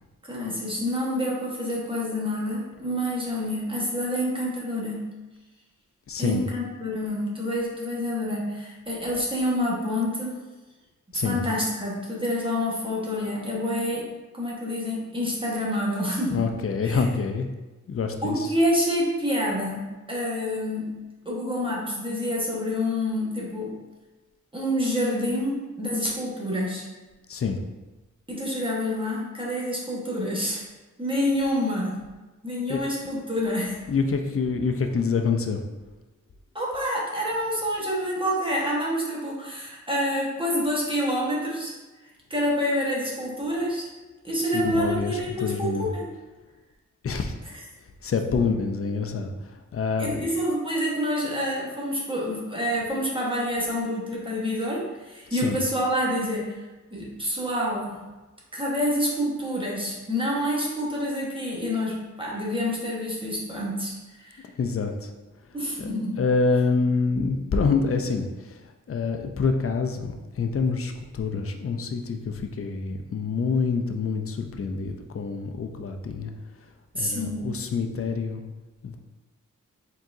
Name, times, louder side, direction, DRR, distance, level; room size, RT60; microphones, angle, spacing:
voice 1, 0.2-5.1 6.2-10.4 11.1-14.1 14.3-16.5 16.8-17.0 18.2-21.0 21.2-23.8 24.5-26.9 28.3-30.6 31.0-32.0 32.4-33.9 36.5-41.7 42.3-43.9 44.2-46.1 50.0-56.6 56.9-58.0 58.5-64.5 65.5-66.2 77.0-77.5, equal, 15° right, -5 dB, 1.2 m, -27 dB
voice 2, 6.1-6.5 11.1-11.5 16.3-17.5 17.9-18.5 27.3-27.6 32.7-32.8 33.9-35.6 44.5-45.9 47.0-47.4 48.0-50.3 55.3-55.6 64.6-65.1 65.8-65.9 66.2-76.3 76.9-78.4 78.8-79.0, left 4 dB, 45° left, 5 dB, 0.5 m, -26 dB
4.5 x 3.8 x 2.6 m, 1.2 s
cardioid pair, 65°, 31 cm